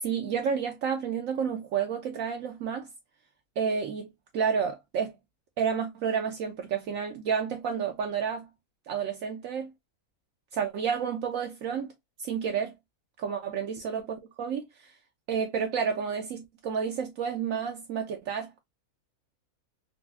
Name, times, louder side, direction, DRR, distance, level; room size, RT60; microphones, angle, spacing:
voice 1, 0.0-2.9 3.6-5.1 5.6-8.5 8.9-9.7 10.5-11.9 12.2-12.7 13.2-14.9 15.3-18.6, right 7 dB, 70° right, 0.9 m, -30 dB
4.0 x 2.1 x 2.3 m
omnidirectional pair, 1.5 m